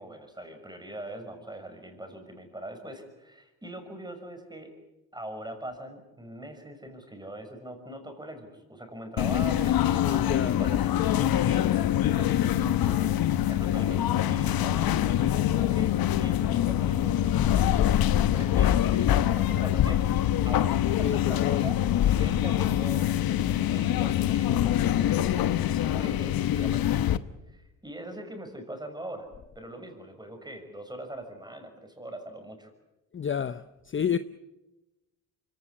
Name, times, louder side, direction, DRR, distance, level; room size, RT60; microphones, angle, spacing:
voice 1, 0.0-4.7 5.1-27.1 27.5-29.3 29.5-32.7, right 1 dB, 10° right, 6.2 m, -42 dB
sound 1, 9.2-27.2, left 11 dB, 70° left, 1.1 m, -24 dB
voice 2, 9.8-10.6 21.0-21.7 33.1-34.2, left 8 dB, 30° left, 0.7 m, -30 dB
24.5 x 17.0 x 9.9 m
cardioid pair, 80°, 38 cm